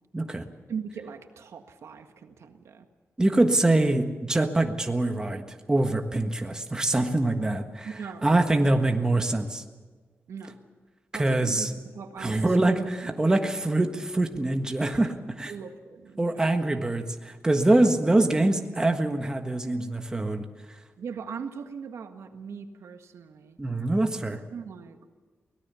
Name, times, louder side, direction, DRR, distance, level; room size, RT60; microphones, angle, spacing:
voice 1, 0.1-0.5 3.2-7.9 8.2-9.6 11.1-11.7 12.2-15.5 16.2-20.4 23.6-24.4, right 2 dB, 15° right, 5 dB, 1.5 m, -24 dB
voice 2, 0.7-2.9 7.8-8.7 10.3-10.5 11.1-12.9 15.4-16.5 21.0-23.6 24.5-25.0, right 6 dB, 85° right, 6 dB, 1.7 m, -40 dB
23.5 x 18.0 x 7.0 m, 1.4 s
wide cardioid pair, 150°, 5 cm